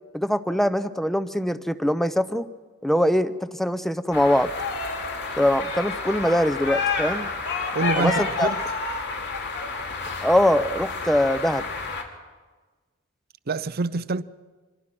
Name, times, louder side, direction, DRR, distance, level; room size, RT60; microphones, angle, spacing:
voice 1, 0.1-2.5 2.8-4.5 5.4-7.3 8.0-8.5 10.2-11.7, left 1 dB, ahead, 0.7 m, -22 dB
sound 1, 4.1-12.0, left 4 dB, 55° left, 2.7 m, -29 dB
voice 2, 7.7-8.6 13.5-14.2, right 3 dB, 50° right, 0.6 m, -26 dB
25.5 x 22.0 x 6.0 m
head